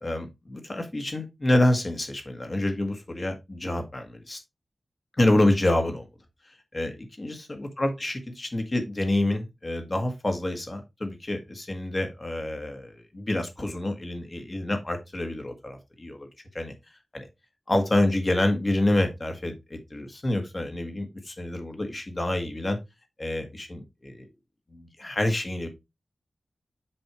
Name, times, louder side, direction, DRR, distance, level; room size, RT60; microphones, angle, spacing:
voice 1, 0.0-4.4 5.2-6.1 6.5-16.3 16.5-16.7 17.1-17.3 17.7-22.8 23.2-24.3 24.7-25.7, left 1 dB, 30° left, 5 dB, 1.7 m, -27 dB
7.9 x 5.4 x 3.1 m, 0.22 s
wide cardioid pair, 110°, 0 cm